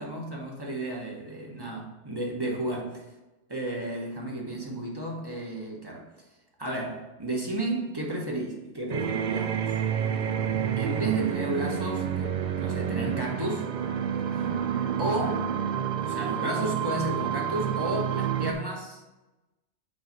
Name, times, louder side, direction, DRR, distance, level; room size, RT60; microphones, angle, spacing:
voice 1, 0.0-3.1 3.5-6.1 6.6-9.8 10.8-13.7 14.3-14.5 15.0-15.5 16.0-19.0, right 1 dB, 20° right, -1 dB, 1.1 m, -33 dB
sound 1, 8.9-18.5, right 8 dB, 65° right, 0.4 m, -29 dB
5.5 x 4.3 x 5.2 m, 1.1 s
omnidirectional pair, 1.3 m